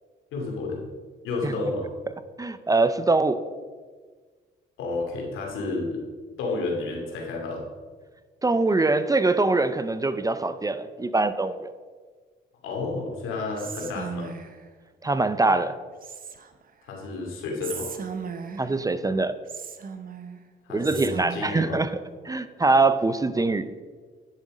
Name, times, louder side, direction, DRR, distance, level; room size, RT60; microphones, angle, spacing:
voice 1, 0.3-0.8 1.2-1.9 4.8-6.0 6.4-7.6 12.6-14.3 16.8-17.9 20.7-21.8, left 3 dB, 90° left, -1 dB, 2.6 m, -31 dB
voice 2, 2.4-3.4 8.4-11.7 15.0-15.7 18.6-19.3 20.7-22.0 22.2-23.7, right 3 dB, 15° right, 12 dB, 0.5 m, -23 dB
Whispering, 13.6-14.7 16.0-16.7 17.6-18.8 19.5-20.4 20.8-21.7, right 6 dB, 45° right, 1.0 m, -37 dB
10.5 x 7.1 x 5.1 m, 1.5 s
cardioid pair, 90°, 20 cm